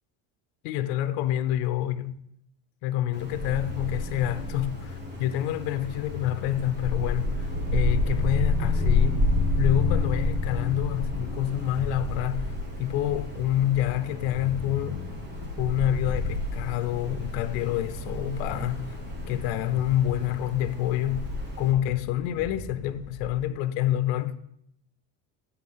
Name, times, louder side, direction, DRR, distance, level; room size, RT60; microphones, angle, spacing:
voice 1, 0.6-2.2 2.8-9.3 9.6-12.5 12.8-15.0 15.6-19.0 19.3-21.3 21.6-24.3, left 12 dB, 80° left, 0.6 m, -27 dB
Wind, 3.1-21.7, left 2 dB, 25° right, 1.3 m, -30 dB
sound 1, 14.3-23.4, left 3 dB, 10° left, 0.8 m, -43 dB
8.1 x 4.2 x 5.5 m
cardioid pair, 155°, 40 cm